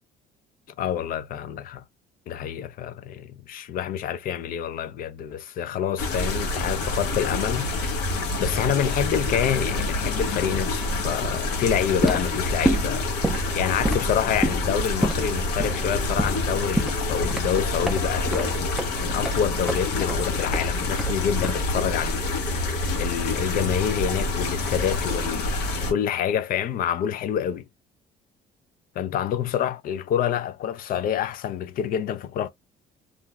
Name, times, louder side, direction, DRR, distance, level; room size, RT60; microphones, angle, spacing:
voice 1, 0.8-1.8 2.3-13.1 13.5-22.2 23.0-27.6 29.0-32.5, left 9 dB, 60° left, 0.4 m, -27 dB
sound 1, 6.0-25.9, left 2 dB, 80° left, 0.9 m, -27 dB
sound 2, 12.0-22.0, right 1 dB, ahead, 0.4 m, -29 dB
2.5 x 2.0 x 3.1 m
cardioid pair, 110°, 17 cm